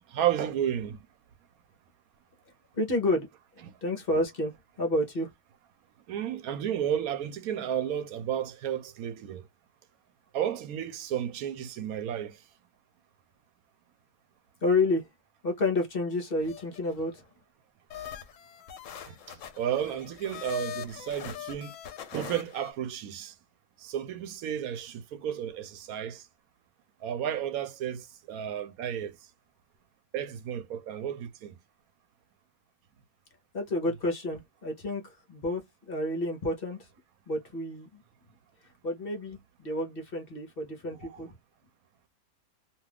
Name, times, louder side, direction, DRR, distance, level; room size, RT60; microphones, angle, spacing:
voice 1, 0.1-1.0 6.1-9.4 10.3-12.4 19.1-21.7 22.1-23.3 23.8-26.2 27.0-29.2 30.1-31.5 41.0-41.2, right 10 dB, 85° right, 1.1 m, -32 dB
voice 2, 2.7-3.3 3.5-4.5 4.8-5.3 14.6-15.1 15.4-17.2 33.5-36.9 37.3-38.0 38.8-41.3, left 2 dB, 50° left, 0.8 m, -30 dB
sound 1, 16.1-17.1 17.9-22.7, left 10 dB, 70° left, 1.0 m, -42 dB
2.6 x 2.3 x 3.3 m
omnidirectional pair, 1.5 m